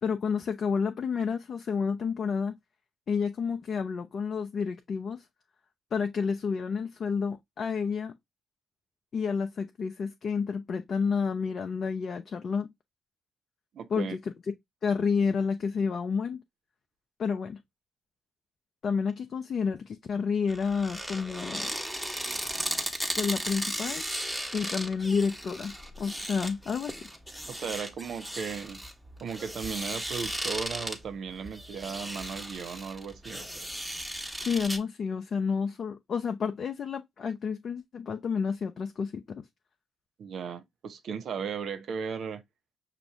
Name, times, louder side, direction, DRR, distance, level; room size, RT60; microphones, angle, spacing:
voice 1, 0.0-2.6 3.1-5.2 5.9-8.1 9.1-12.7 13.9-14.2 14.8-16.4 17.2-17.6 18.8-21.7 23.2-24.0 24.5-27.1 34.4-39.4, left 5 dB, 55° left, 0.5 m, -30 dB
voice 2, 13.7-14.2 27.5-28.8 29.2-33.6 40.2-42.4, right 6 dB, 65° right, 0.7 m, -36 dB
sound 1, 20.5-34.8, equal, 5° right, 1.2 m, -36 dB
5.8 x 2.5 x 3.4 m
hypercardioid pair, 40°, 0 cm